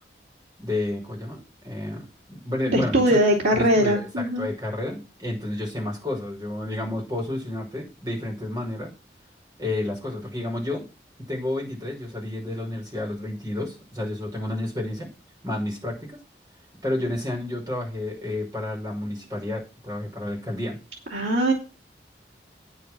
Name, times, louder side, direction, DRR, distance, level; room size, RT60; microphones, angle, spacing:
voice 1, 0.6-1.4 1.6-3.2 3.5-8.9 9.6-10.9 11.3-15.1 15.4-16.2 16.8-20.8, left 1 dB, 20° right, -1 dB, 5.8 m, -30 dB
voice 2, 2.7-4.5 21.1-21.5, right 1 dB, 80° right, -2 dB, 3.0 m, -21 dB
9.4 x 7.2 x 6.2 m, 0.32 s
head